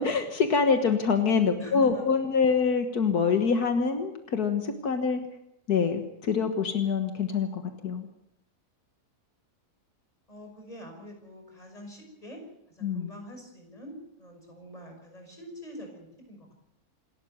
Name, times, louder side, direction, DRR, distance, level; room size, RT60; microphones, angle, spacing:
voice 1, 0.0-5.2 5.7-8.1 12.8-13.1, left 5 dB, 80° left, 6 dB, 2.0 m, -25 dB
voice 2, 1.6-2.2 10.3-12.4 12.7-16.5, equal, 25° left, 3 dB, 6.2 m, -45 dB
27.0 x 13.0 x 9.4 m, 0.85 s
omnidirectional pair, 1.6 m